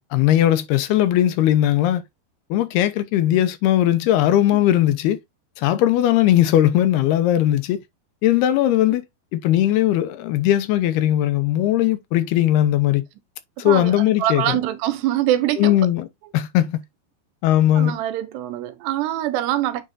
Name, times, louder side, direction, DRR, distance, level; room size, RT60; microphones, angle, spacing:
voice 1, 0.0-2.0 2.5-5.2 5.6-7.8 8.2-9.0 9.3-13.0 13.6-14.6 15.6-16.1 16.3-16.8 17.4-18.0, left 12 dB, 75° left, 2.7 m, -18 dB
voice 2, 13.6-15.8 17.8-19.8, right 13 dB, 80° right, 3.0 m, -24 dB
8.9 x 5.0 x 2.7 m
omnidirectional pair, 4.8 m